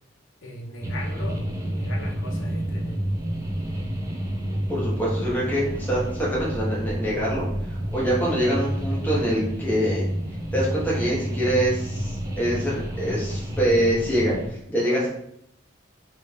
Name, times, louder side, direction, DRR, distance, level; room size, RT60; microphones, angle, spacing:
voice 1, 0.4-3.1, equal, 85° left, -2 dB, 0.7 m, -38 dB
sound 1, 0.8-14.5, equal, 15° right, 0.5 m, -29 dB
voice 2, 4.7-7.5 7.9-10.1 10.5-15.1, equal, 10° left, -6 dB, 1.1 m, -25 dB
3.2 x 2.7 x 3.2 m, 0.73 s
head